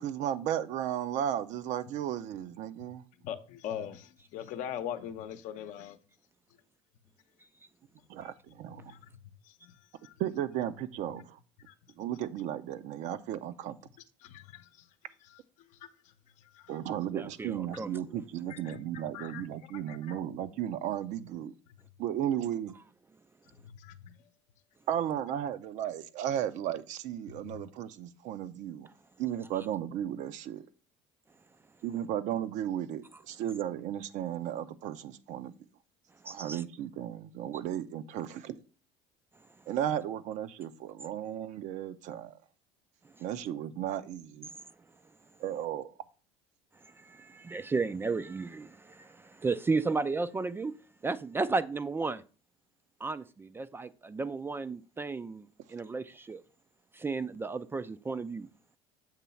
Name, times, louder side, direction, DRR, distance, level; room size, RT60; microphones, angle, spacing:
voice 1, 0.0-3.0 8.1-8.9 10.2-11.4 12.0-13.8 16.7-21.5 22.0-22.8 24.9-28.9 29.2-30.6 31.8-35.5 36.2-38.6 39.7-42.3 43.2-44.5 45.4-45.9, right 10 dB, 60° right, 0.6 m, -35 dB
voice 2, 3.2-6.0 8.8-9.0 9.6-9.7 10.0-10.1 11.2-11.3 11.7-11.8 14.2-14.7 16.5-16.6 18.5-18.8 19.1-19.5 19.7-20.2 23.6-24.1, left 10 dB, 65° left, 0.8 m, -41 dB
voice 3, 17.1-18.0 36.3-36.6 46.8-50.8 51.0-52.2 53.0-56.4 56.9-58.5, right 4 dB, 15° right, 0.3 m, -34 dB
7.4 x 3.0 x 5.7 m
supercardioid pair, 105°, 14 cm